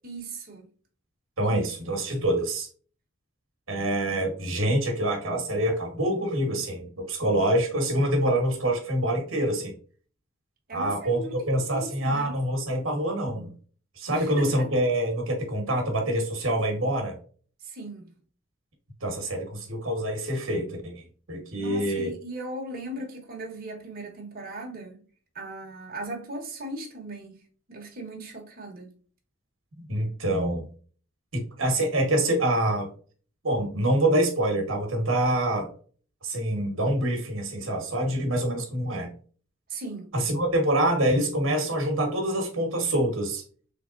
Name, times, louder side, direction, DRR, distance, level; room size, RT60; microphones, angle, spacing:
voice 1, 0.0-0.7 1.4-1.6 10.7-12.4 14.1-14.5 17.6-18.1 21.6-25.0 25.3-27.4 27.7-28.9 39.7-40.1, right 2 dB, 45° right, 1.1 m, -38 dB
voice 2, 1.4-2.7 3.7-9.7 10.7-13.5 14.0-17.2 19.0-21.0 21.3-22.1 29.8-30.7 31.3-32.9 33.4-35.7 36.2-39.1 40.1-43.4, right 1 dB, 65° right, 1.2 m, -26 dB
3.5 x 3.4 x 2.5 m
head